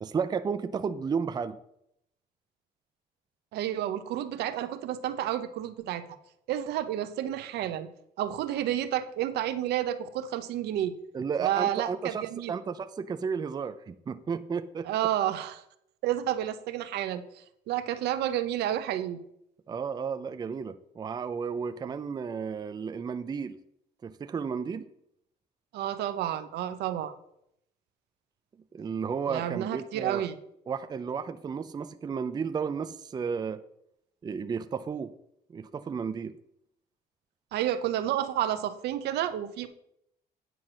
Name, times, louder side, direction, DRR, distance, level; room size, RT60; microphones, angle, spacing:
voice 1, 0.0-1.6 11.1-14.9 19.7-23.6 24.0-24.9 28.7-30.2 30.7-33.6 34.2-35.1 35.5-36.4, right 6 dB, 25° right, 10 dB, 0.5 m, -33 dB
voice 2, 3.5-6.0 6.5-7.9 8.2-10.9 11.4-12.6 14.8-15.6 16.0-19.2 25.7-27.1 29.3-30.4 37.5-39.7, right 11 dB, 75° right, 10 dB, 0.8 m, -30 dB
9.2 x 4.7 x 6.1 m, 0.75 s
cardioid pair, 110°, 17 cm